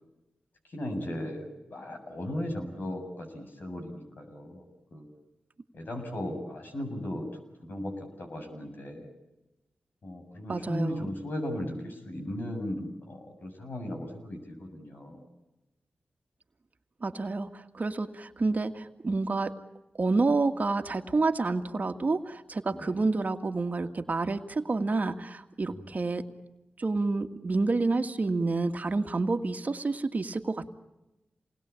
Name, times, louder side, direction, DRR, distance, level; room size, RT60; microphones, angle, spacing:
voice 1, 0.7-5.1 5.7-7.4 7.7-9.1 10.0-15.3 22.7-23.1 25.7-25.9, left 1 dB, 65° left, 4 dB, 7.7 m, -37 dB
voice 2, 10.5-11.1 17.0-19.5 20.0-26.2 26.8-30.7, right 3 dB, 50° right, 7 dB, 2.0 m, -29 dB
27.5 x 20.5 x 8.5 m, 0.99 s
cardioid pair, 50°, 4 cm